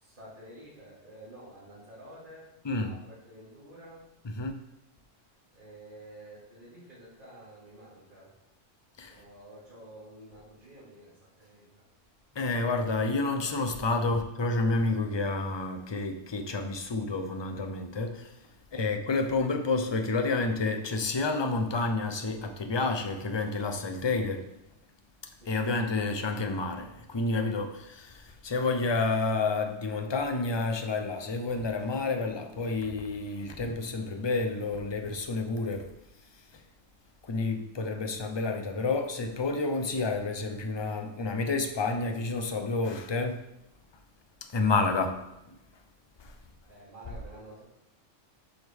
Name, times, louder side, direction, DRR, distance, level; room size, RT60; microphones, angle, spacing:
voice 1, 0.0-4.1 5.5-8.3 9.1-11.8 25.4-26.1 46.7-47.6, right 1 dB, 45° right, 2.4 m, -50 dB
voice 2, 12.3-18.3 18.7-24.5 25.5-35.9 37.2-43.4 44.5-45.6 46.2-46.4, left 3 dB, 30° left, 0.5 m, -29 dB
7.7 x 5.0 x 3.5 m
omnidirectional pair, 1.3 m